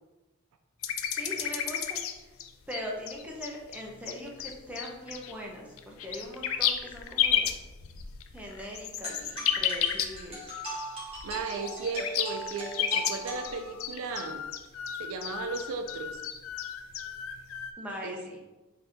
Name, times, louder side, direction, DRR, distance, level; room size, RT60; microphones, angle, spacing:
sound 1, 0.8-2.1 2.4-5.3 5.8-10.5 10.8-10.9 11.1-17.7, left 9 dB, 70° left, 0.4 m, -32 dB
voice 1, 1.1-2.3 2.7-7.5 8.3-10.5 17.8-18.4, equal, 5° right, -2 dB, 0.6 m, -41 dB
sound 2, 9.0-14.0, right 1 dB, 30° right, 1.5 m, -40 dB
voice 2, 11.2-14.4 15.0-16.2 18.0-18.2, right 4 dB, 75° right, 6 dB, 0.4 m, -36 dB
4.1 x 2.8 x 3.3 m, 1.1 s
head